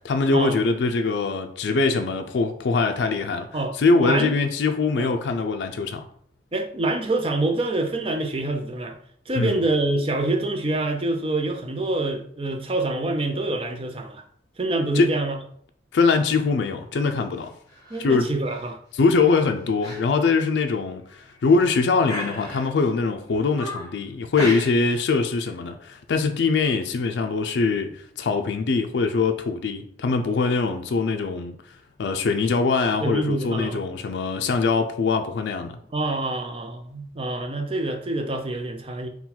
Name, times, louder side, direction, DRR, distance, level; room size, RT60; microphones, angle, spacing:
voice 1, 0.0-3.5 3.7-6.0 9.3-9.6 14.9-15.1 15.9-17.5 18.0-18.3 18.9-21.0 21.4-31.6 32.0-35.8, left 4 dB, 75° left, 0.4 m, -22 dB
voice 2, 4.0-4.4 5.0-5.1 6.5-9.0 9.3-14.2 14.6-15.4 17.9-18.8 33.0-33.8 35.9-39.1, right 2 dB, 30° right, 0.5 m, -26 dB
sound 1, 17.7-18.0 18.5-18.7 19.2-19.4 19.8-20.0 20.4-20.5 21.1-21.6 22.1-22.9 23.3-24.0 24.3-25.0 25.3-25.5, equal, 20° left, 1.3 m, -34 dB
3.9 x 2.2 x 4.3 m
head